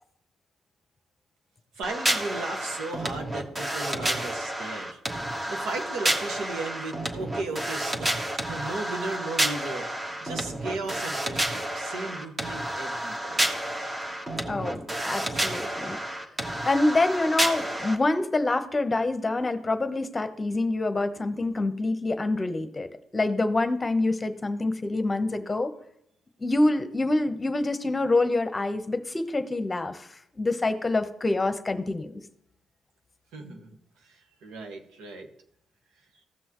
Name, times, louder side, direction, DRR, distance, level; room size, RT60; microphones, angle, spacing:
voice 1, 1.7-13.6 33.3-33.8 34.0-35.3, right 3 dB, 90° right, 3 dB, 1.7 m, -36 dB
sound 1, 1.8-17.9, right 1 dB, 25° right, 1.4 m, -30 dB
voice 2, 14.5-16.3 16.6-22.9 23.1-25.7 26.4-32.2, left 2 dB, 25° left, 9 dB, 0.9 m, -26 dB
16.0 x 6.2 x 3.0 m, 0.73 s
cardioid pair, 90°, 0 cm